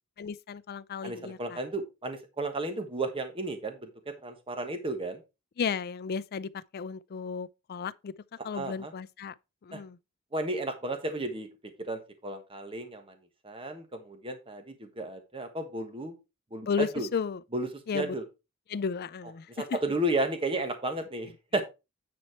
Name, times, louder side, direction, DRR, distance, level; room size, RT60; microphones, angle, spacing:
voice 1, 0.2-1.6 5.6-8.1 8.4-9.3 9.6-10.0 16.7-17.4 17.9-18.2 18.7-19.6, left 6 dB, 45° left, 0.4 m, -34 dB
voice 2, 1.0-3.9 4.2-5.2 8.5-8.9 9.7-9.8 10.3-11.5 11.8-13.1 13.4-16.1 16.5-17.1 17.5-17.7 17.9-18.2 19.5-21.6, right 2 dB, 25° right, 1.3 m, -33 dB
9.5 x 4.3 x 4.3 m
head